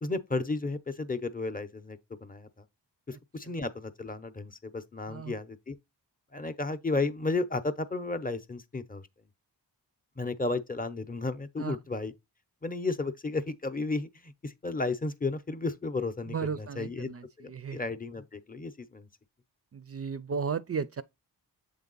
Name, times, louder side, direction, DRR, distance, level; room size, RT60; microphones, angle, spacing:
voice 1, 0.0-2.5 3.1-5.8 6.3-9.1 10.2-12.1 12.6-17.1 17.4-19.1, left 3 dB, 20° left, 0.7 m, -33 dB
voice 2, 16.3-17.8 19.7-21.0, right 6 dB, 35° right, 0.4 m, -35 dB
7.4 x 3.5 x 3.9 m
wide cardioid pair, 60°, 43 cm